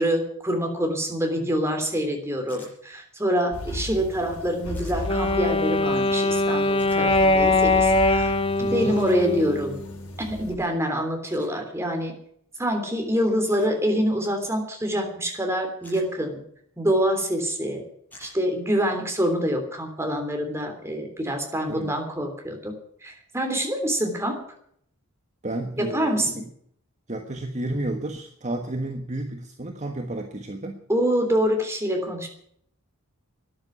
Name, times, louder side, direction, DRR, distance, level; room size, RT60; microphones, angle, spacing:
voice 1, 0.0-8.3 8.7-9.8 10.2-12.1 12.6-16.4 16.8-17.8 18.2-22.7 23.0-24.4 25.8-26.4 30.9-32.3, equal, 10° right, 3 dB, 3.3 m, -26 dB
sound 1, 2.5-2.7 4.7-5.0 6.8-7.0 9.0-9.2 11.3-11.5 13.5-13.8 15.8-16.1 18.1-18.4, left 1 dB, 10° left, 7.0 m, -48 dB
sound 2, 3.5-10.6, left 1 dB, 70° left, 4.2 m, -36 dB
Wind instrument woodwind instrument, 5.0-10.1, left 2 dB, 25° left, 1.2 m, -22 dB
voice 2, 8.6-8.9 21.7-21.9 25.4-26.4 27.1-30.8, right 1 dB, 35° right, 4 dB, 1.5 m, -31 dB
13.0 x 10.5 x 9.8 m, 0.66 s
head